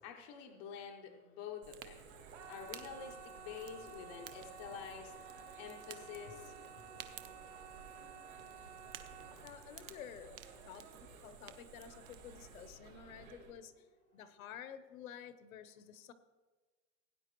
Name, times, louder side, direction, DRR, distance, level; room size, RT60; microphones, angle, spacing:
voice 1, 0.0-2.1 2.5-5.1 5.6-6.5, left 7 dB, 20° left, 3 dB, 0.5 m, -48 dB
Fire, 1.6-12.7, right 10 dB, 40° right, 0.6 m, -56 dB
sound 1, 1.9-13.5, right 4 dB, 80° right, 4.4 m, -57 dB
sound 2, 2.2-13.1 13.4-14.0 14.3-14.4, right 6 dB, 60° right, 1.5 m, -54 dB
voice 2, 9.1-13.9 14.1-16.1, left 8 dB, 75° left, 13 dB, 0.9 m, -52 dB
17.0 x 9.5 x 3.0 m, 1.3 s
supercardioid pair, 175°, 42 cm